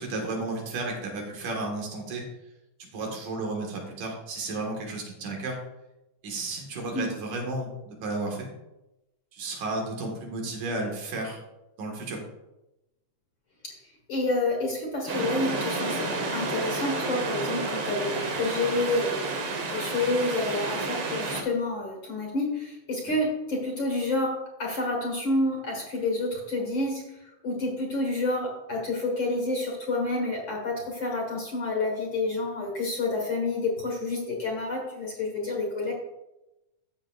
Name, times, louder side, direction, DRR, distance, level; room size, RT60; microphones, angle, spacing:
voice 1, 0.0-2.2 2.8-5.6 6.2-8.5 9.3-11.4 11.8-12.2, right 2 dB, 80° right, 1 dB, 3.1 m, -33 dB
voice 2, 14.1-27.2 27.4-35.9, left 2 dB, 45° left, 0 dB, 2.0 m, -29 dB
sound 1, 15.1-21.4, right 3 dB, 60° right, 1.6 m, -30 dB
13.5 x 7.2 x 2.4 m, 0.96 s
omnidirectional pair, 3.5 m